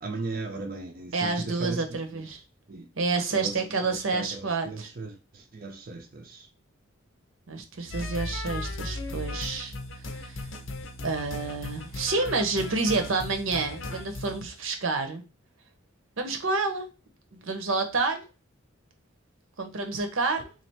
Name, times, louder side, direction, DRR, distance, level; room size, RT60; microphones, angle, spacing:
voice 1, 0.0-2.2 2.7-2.9 3.3-6.5, right 3 dB, 45° right, 0.5 m, -37 dB
voice 2, 1.1-2.4 3.0-4.9 7.5-9.7 10.2-10.4 11.0-15.2 16.2-16.9 17.3-18.2 19.6-20.5, right 3 dB, 80° right, 0.8 m, -29 dB
sound 1, 7.9-14.5, left 2 dB, 75° left, 0.7 m, -36 dB
3.2 x 2.5 x 4.2 m
head